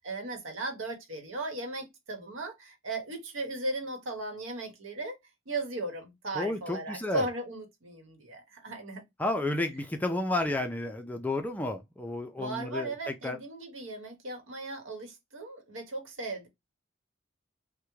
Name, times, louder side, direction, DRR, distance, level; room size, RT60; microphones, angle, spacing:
voice 1, 0.0-5.2 5.5-9.0 12.4-16.5, right 2 dB, 80° right, 1.0 m, -37 dB
voice 2, 6.3-7.2 9.2-13.4, left 2 dB, 10° left, 0.4 m, -31 dB
3.4 x 2.1 x 3.0 m
head